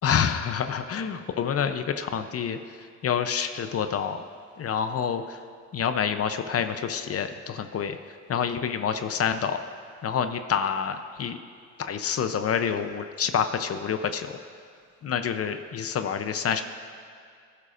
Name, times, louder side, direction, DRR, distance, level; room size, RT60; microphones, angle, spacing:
voice 1, 0.0-2.6 3.0-4.2 4.6-5.2 5.7-8.0 8.3-9.6 10.0-11.4 11.8-14.3 15.0-16.6, left 7 dB, 50° left, 8 dB, 0.7 m, -27 dB
19.5 x 11.0 x 2.5 m, 2.2 s
cardioid pair, 90°, 30 cm